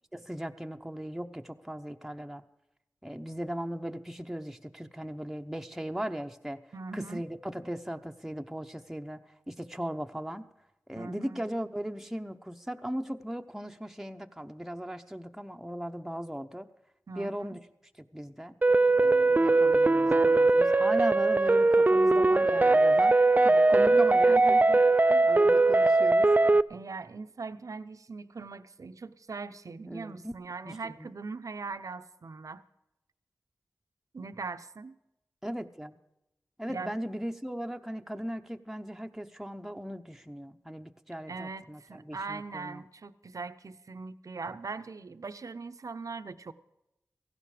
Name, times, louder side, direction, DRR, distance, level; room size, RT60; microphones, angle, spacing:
voice 1, 0.1-2.4 3.0-6.6 6.9-9.2 9.5-10.4 10.9-16.7 17.1-17.6 18.0-18.6 19.0-24.6 25.3-26.3 29.9-30.3 30.6-31.1 35.4-36.0 36.6-42.8, equal, 5° right, 5 dB, 1.0 m, -38 dB
voice 2, 6.7-7.2 11.0-11.4 17.1-17.3 23.8-24.8 25.1-25.3 26.7-32.6 34.1-35.0 36.7-36.9 41.3-46.5, right 4 dB, 65° right, 11 dB, 0.8 m, -40 dB
sound 1, 18.6-26.6, right 2 dB, 30° right, 0.5 m, -21 dB
17.0 x 15.5 x 5.0 m, 0.87 s
wide cardioid pair, 70°, 6 cm